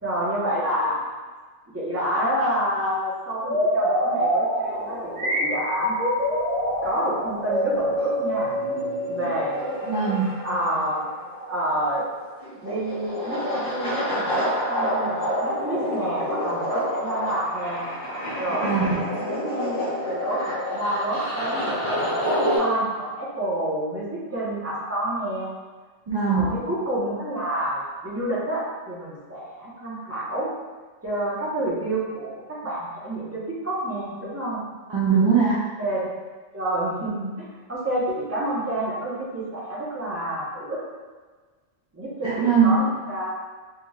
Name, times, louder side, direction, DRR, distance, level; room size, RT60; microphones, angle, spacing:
voice 1, 0.0-1.0 1.7-6.0 6.8-8.5 9.1-9.8 10.4-11.1 11.5-12.1 12.6-17.9 18.4-18.8 19.2-25.5 26.3-30.5 31.0-34.6 35.8-36.1 36.5-40.8 41.9-43.3, right 1 dB, 15° right, -8 dB, 0.8 m, -28 dB
sound 1, 3.4-10.1, equal, 80° right, 1.2 m, -25 dB
sound 2, 4.6-22.6, equal, 45° left, 1.3 m, -29 dB
voice 2, 9.9-10.3 18.6-18.8 26.1-26.4 34.9-35.5 42.2-42.8, right 6 dB, 50° right, -7 dB, 0.3 m, -20 dB
4.1 x 3.2 x 2.3 m, 1.4 s
omnidirectional pair, 1.2 m